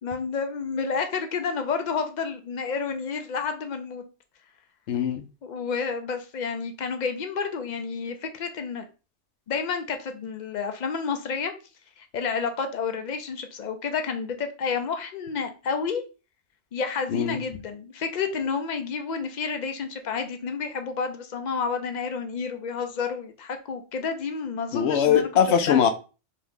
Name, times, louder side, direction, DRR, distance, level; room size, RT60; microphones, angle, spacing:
voice 1, 0.0-4.0 5.4-8.9 9.5-11.5 12.0-16.0 16.7-25.3 25.7-25.8, left 5 dB, 55° left, 0.5 m, -30 dB
voice 2, 4.9-5.2 17.1-17.4 24.7-25.9, left 8 dB, 75° left, 0.9 m, -21 dB
2.8 x 2.6 x 3.5 m
omnidirectional pair, 1.2 m